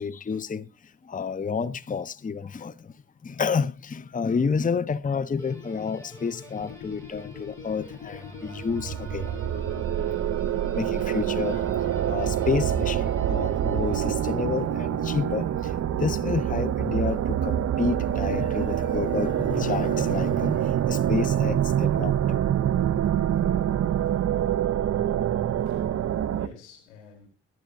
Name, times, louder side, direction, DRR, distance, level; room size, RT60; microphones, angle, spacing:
voice 1, 0.0-2.9 3.2-9.6 10.7-22.7 23.8-23.9, left 5 dB, 25° left, 0.7 m, -30 dB
Guitar, 5.4-14.7, equal, 10° left, 6.4 m, -47 dB
sound 1, 6.6-15.3, left 11 dB, 60° left, 0.8 m, -43 dB
sound 2, 8.4-26.5, right 10 dB, 50° right, 0.7 m, -26 dB
voice 2, 25.2-27.3, left 5 dB, 90° left, 3.6 m, -50 dB
22.0 x 7.7 x 2.7 m
hypercardioid pair, 45°, 33 cm